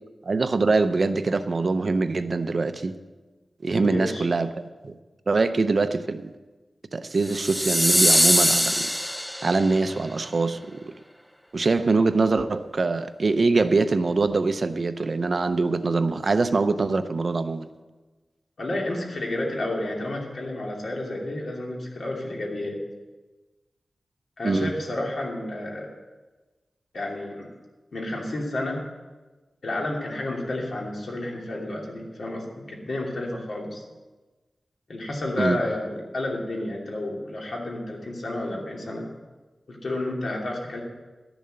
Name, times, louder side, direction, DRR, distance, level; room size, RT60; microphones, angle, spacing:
voice 1, 0.3-2.9 3.6-4.5 4.8-5.0 5.3-6.3 6.9-8.9 9.4-10.8 11.5-17.7 24.4-24.7 35.4-35.6, right 3 dB, 50° right, 11 dB, 0.6 m, -23 dB
voice 2, 3.8-4.2 18.6-22.8 24.4-25.9 26.9-27.5 27.9-28.8 29.6-33.8 34.9-39.1 39.7-40.8, left 1 dB, 65° left, -1 dB, 2.7 m, -31 dB
sound 1, 7.3-9.8, equal, 5° left, 0.3 m, -22 dB
12.0 x 7.1 x 7.6 m, 1.2 s
wide cardioid pair, 120°, 0 cm